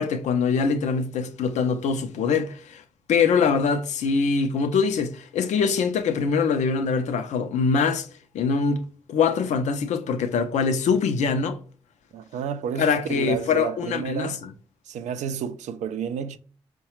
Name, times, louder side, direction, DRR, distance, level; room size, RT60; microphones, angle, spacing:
voice 1, 0.0-2.8 3.1-8.1 8.3-8.8 9.1-11.6 12.8-14.5, left 5 dB, 75° left, 0.5 m, -23 dB
voice 2, 12.1-14.4 14.9-16.4, right 7 dB, 75° right, 0.4 m, -31 dB
4.6 x 2.2 x 2.9 m
supercardioid pair, 50°, 12 cm